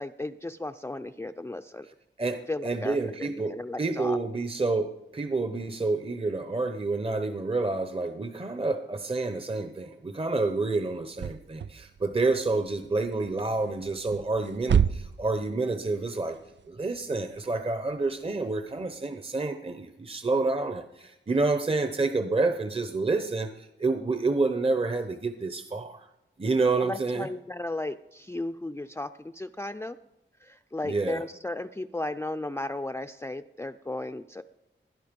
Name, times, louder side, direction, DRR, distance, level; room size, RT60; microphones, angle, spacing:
voice 1, 0.0-1.9 2.5-4.2 26.8-30.0 30.4-34.4, left 2 dB, 15° left, 9 dB, 0.4 m, -35 dB
voice 2, 2.2-16.4 16.7-26.1 26.4-27.3 30.8-31.2, right 3 dB, 30° right, 8 dB, 0.8 m, -28 dB
sound 1, 10.9-19.0, right 8 dB, 65° right, 0.4 m, -32 dB
20.0 x 11.5 x 5.3 m, 0.92 s
wide cardioid pair, 90°, 20 cm